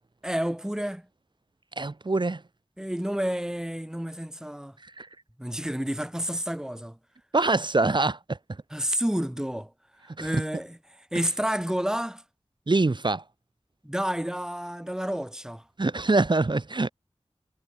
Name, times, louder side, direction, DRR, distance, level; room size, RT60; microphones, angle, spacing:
voice 1, 0.2-1.1 2.8-4.8 5.4-7.0 8.7-9.7 10.0-10.8 11.1-12.2 13.8-15.6, equal, 5° right, 0.9 m, -30 dB
voice 2, 1.8-2.4 5.0-5.1 7.3-8.4 10.2-10.4 11.1-11.2 12.7-13.2 15.8-16.9, right 3 dB, 45° right, 0.9 m, -24 dB
wide cardioid pair, 60°, 11 cm